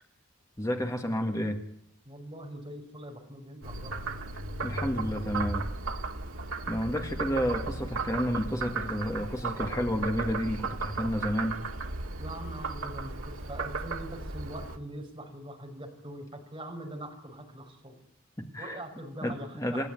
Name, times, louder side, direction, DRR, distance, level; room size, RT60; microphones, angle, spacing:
voice 1, 0.6-1.6 4.6-5.7 6.7-11.6 18.4-18.8 19.2-19.9, equal, 15° left, 3 dB, 1.8 m, -31 dB
voice 2, 2.1-4.2 12.2-17.9 18.6-19.9, right 1 dB, 20° right, 1 dB, 5.6 m, -42 dB
Frog, 3.6-14.8, right 3 dB, 75° right, 2.0 m, -35 dB
28.5 x 15.5 x 9.4 m, 0.74 s
head